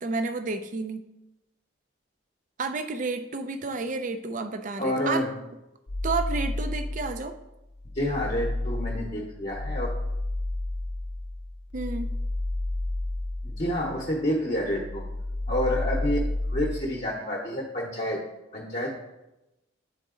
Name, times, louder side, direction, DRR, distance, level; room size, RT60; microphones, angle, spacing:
voice 1, 0.0-1.1 2.6-5.3 6.0-7.4 11.7-12.1, right 3 dB, 40° right, 8 dB, 0.4 m, -31 dB
voice 2, 4.8-5.3 7.9-9.9 13.4-15.0 15.5-16.2 16.5-18.2 18.5-18.9, left 1 dB, 35° left, -2 dB, 0.8 m, -28 dB
sound 1, 5.9-7.3 7.7-14.2 14.5-16.8, left 2 dB, 70° left, 0.7 m, -31 dB
8.8 x 3.9 x 3.7 m, 0.96 s
head